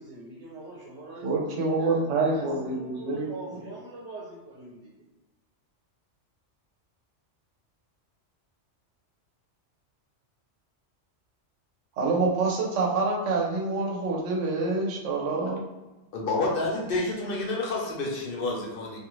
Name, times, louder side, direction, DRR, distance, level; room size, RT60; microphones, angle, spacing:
voice 1, 0.0-5.0, right 2 dB, 60° right, -7 dB, 1.0 m, -44 dB
voice 2, 1.2-3.3 12.0-15.6, right 3 dB, 90° right, -1 dB, 1.0 m, -26 dB
voice 3, 16.1-19.0, left 2 dB, 55° left, -2 dB, 0.8 m, -29 dB
2.5 x 2.5 x 3.0 m, 1.1 s
omnidirectional pair, 1.2 m